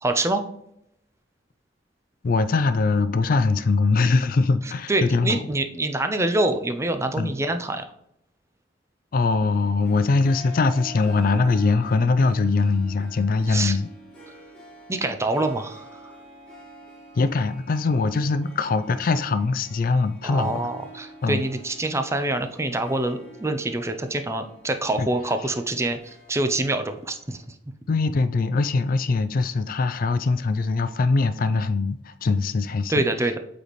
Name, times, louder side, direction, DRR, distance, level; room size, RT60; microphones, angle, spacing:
voice 1, 0.0-0.4 4.9-7.8 13.5-13.8 14.9-16.1 20.2-27.4 32.9-33.4, right 2 dB, 15° right, 0.5 m, -25 dB
voice 2, 2.2-5.4 7.2-7.3 9.1-13.9 17.2-20.6 21.2-21.4 25.0-25.1 27.9-33.0, left 3 dB, 50° left, 0.4 m, -22 dB
Harp, 9.8-27.4, right 1 dB, 5° left, 2.1 m, -46 dB
8.1 x 4.2 x 3.1 m
head